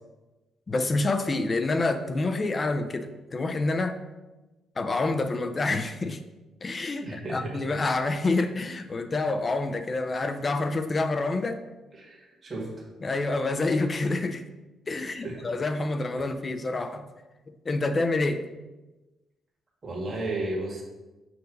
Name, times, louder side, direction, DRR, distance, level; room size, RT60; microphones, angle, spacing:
voice 1, 0.7-4.0 4.8-6.2 6.6-11.6 13.0-14.4 14.9-17.1 17.7-18.5, left 2 dB, 35° left, 8 dB, 0.5 m, -27 dB
voice 2, 7.0-7.6 11.9-12.9 15.0-15.5 19.8-20.8, right 2 dB, 35° right, -3 dB, 1.9 m, -34 dB
6.8 x 2.6 x 5.3 m, 1.1 s
cardioid pair, 90°, 0 cm